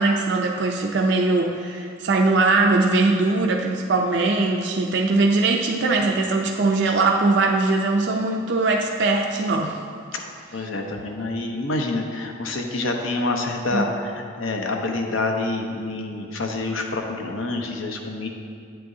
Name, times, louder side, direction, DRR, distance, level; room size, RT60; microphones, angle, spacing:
voice 1, 0.0-9.8 13.7-13.8, right 3 dB, 55° right, 1 dB, 0.4 m, -21 dB
voice 2, 10.5-18.3, left 2 dB, 75° left, 2 dB, 0.8 m, -27 dB
8.9 x 7.8 x 2.7 m, 2.3 s
head